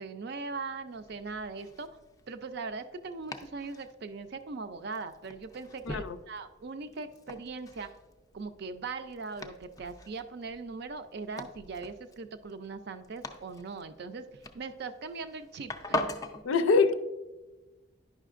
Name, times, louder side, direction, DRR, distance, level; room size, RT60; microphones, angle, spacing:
voice 1, 0.0-1.9 2.3-7.9 8.3-14.3 14.5-16.1, right 4 dB, 55° right, 10 dB, 0.5 m, -40 dB
Domestic sounds home sounds, 0.9-16.4, left 1 dB, 20° left, 0.4 m, -43 dB
voice 2, 5.9-6.2 16.4-16.9, left 4 dB, 85° left, 11 dB, 0.5 m, -24 dB
10.0 x 5.7 x 2.5 m, 1.1 s
head